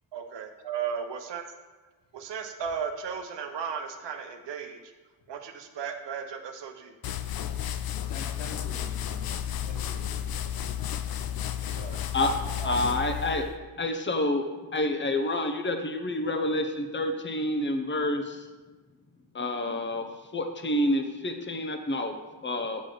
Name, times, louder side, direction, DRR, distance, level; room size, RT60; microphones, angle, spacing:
voice 1, 0.1-1.4 2.1-4.8 5.3-6.9 11.8-12.0 12.6-13.1, right 7 dB, 75° right, 5 dB, 0.8 m, -35 dB
sound 1, 7.0-13.5, left 10 dB, 60° left, 0.5 m, -32 dB
voice 2, 8.1-10.2, left 3 dB, 85° left, -1 dB, 1.5 m, -45 dB
voice 3, 12.6-13.5 13.8-14.5 14.7-18.4 19.3-20.0 20.3-22.1 22.4-22.8, left 1 dB, 25° left, 5 dB, 0.8 m, -28 dB
6.2 x 5.2 x 3.8 m, 1.3 s
cardioid pair, 65°, 42 cm